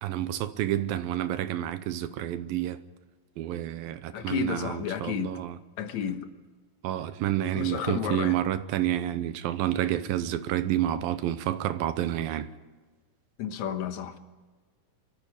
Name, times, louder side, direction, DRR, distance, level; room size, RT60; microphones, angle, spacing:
voice 1, 0.0-2.8 3.4-5.6 6.8-12.5, right 12 dB, 85° right, 2.6 m, -29 dB
voice 2, 4.1-5.3 5.8-6.3 7.5-8.4 13.4-14.2, left 8 dB, 60° left, 2.3 m, -31 dB
24.0 x 14.0 x 9.9 m
omnidirectional pair, 4.1 m